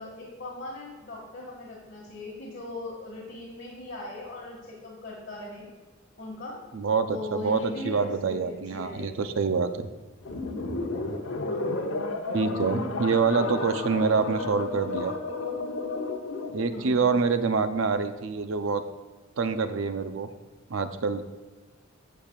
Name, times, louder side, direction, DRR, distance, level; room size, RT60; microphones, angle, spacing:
voice 1, 0.0-5.7 6.2-6.6 7.1-9.4 11.4-12.0 13.3-13.6 16.7-17.1, left 2 dB, 55° left, -6 dB, 2.0 m, -39 dB
voice 2, 6.7-9.9 12.3-15.1 16.5-18.8 19.4-20.3 20.7-21.2, right 5 dB, 75° right, 9 dB, 0.6 m, -26 dB
sound 1, 10.2-16.7, left 2 dB, 70° left, 0.9 m, -32 dB
12.0 x 7.1 x 2.4 m, 1.3 s
head